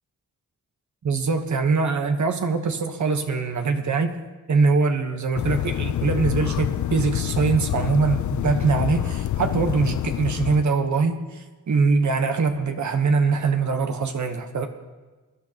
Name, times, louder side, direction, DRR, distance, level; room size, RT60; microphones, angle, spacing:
voice 1, 1.0-4.1 4.5-14.7, right 4 dB, 65° right, 6 dB, 1.2 m, -23 dB
sound 1, 5.4-10.6, left 13 dB, 70° left, 0.4 m, -27 dB
22.0 x 11.0 x 2.9 m, 1.3 s
cardioid pair, 70°, 31 cm